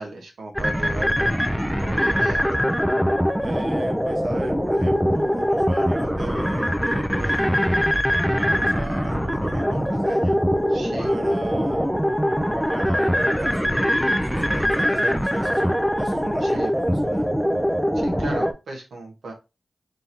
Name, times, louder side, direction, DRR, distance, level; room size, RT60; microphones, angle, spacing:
voice 1, 0.0-1.4 1.8-2.5 10.7-11.1 16.4-16.7 17.9-19.3, right 2 dB, 90° right, 0 dB, 1.3 m, -35 dB
sound 1, 0.6-18.5, equal, ahead, 0.7 m, -22 dB
voice 2, 3.4-7.9 8.3-10.4 11.0-11.9 12.7-17.3, right 2 dB, 55° right, 2 dB, 1.0 m, -38 dB
3.8 x 2.6 x 4.3 m, 0.26 s
cardioid pair, 45°, 0 cm